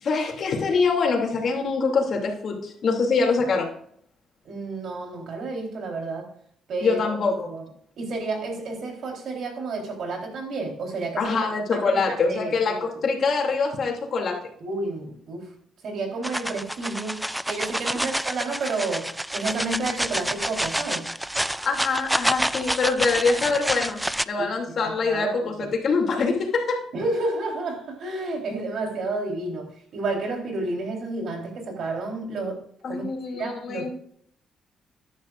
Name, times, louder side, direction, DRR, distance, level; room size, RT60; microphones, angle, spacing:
voice 1, 0.0-3.7 6.8-7.5 11.2-14.4 17.9-18.0 21.6-24.0 24.3-26.8 32.8-33.9, left 4 dB, 55° left, 0 dB, 2.8 m, -24 dB
voice 2, 4.5-6.3 6.7-7.0 7.4-7.6 8.0-11.4 11.7-11.8 12.1-12.5 14.6-15.5 15.8-19.1 19.3-21.0 24.4-24.5 24.8-25.7 26.9-32.6 32.9-33.0 33.3-33.9, right 3 dB, 65° right, 1 dB, 4.0 m, -30 dB
sound 1, 16.2-24.2, equal, 5° right, 0.3 m, -28 dB
13.5 x 10.5 x 2.6 m, 0.64 s
cardioid pair, 90°, 0 cm